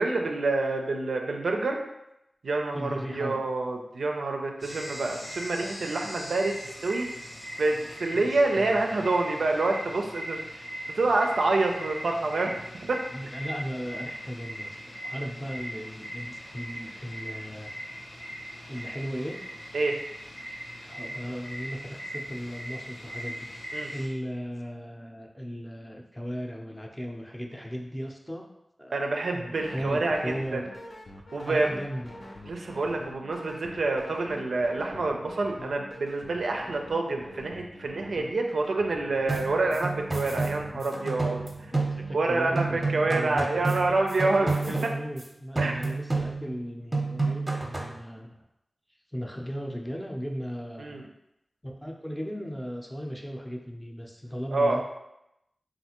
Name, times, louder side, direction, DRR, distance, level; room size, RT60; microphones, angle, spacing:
voice 1, 0.0-1.8 2.4-6.5 6.8-7.1 7.6-10.4 10.9-12.5 12.8-13.0 19.7-20.0 23.7-23.9 28.9-30.7 31.3-31.7 32.4-41.4 42.1-44.6 45.6-45.7 50.8-51.0 54.5-54.8, right 2 dB, 85° right, 2 dB, 0.4 m, -27 dB
voice 2, 2.7-3.4 8.1-9.1 13.1-14.8 15.0-17.7 18.7-19.5 20.9-28.5 28.8-30.7 31.4-32.1 41.9-48.4 49.1-51.1 51.6-54.8, equal, 10° left, 0 dB, 0.5 m, -37 dB
sound 1, 4.6-24.1, equal, 90° left, 0.9 m, -40 dB
sound 2, 29.5-43.1, left 1 dB, 60° left, 0.5 m, -45 dB
sound 3, 39.3-42.3 42.6-45.3 45.6-46.6 46.9-48.0, right 3 dB, 25° right, 0.7 m, -30 dB
3.3 x 2.4 x 2.9 m, 0.86 s
cardioid pair, 45°, 0 cm